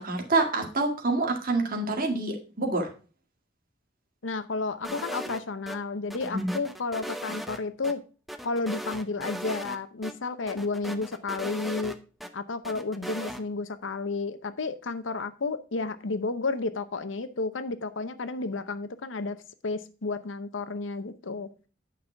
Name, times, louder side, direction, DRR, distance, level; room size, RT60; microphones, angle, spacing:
voice 1, 0.0-2.9 6.3-6.5, right 2 dB, 50° right, 3 dB, 1.8 m, -27 dB
voice 2, 4.2-8.0 8.4-11.9 12.3-21.5, left 3 dB, 80° left, 12 dB, 0.8 m, -32 dB
sound 1, 4.8-5.8 6.1-7.9 8.3-9.8 10.0-10.1 10.5-12.3 12.6-13.4, equal, ahead, 0.7 m, -38 dB
9.3 x 5.5 x 4.5 m, 0.35 s
head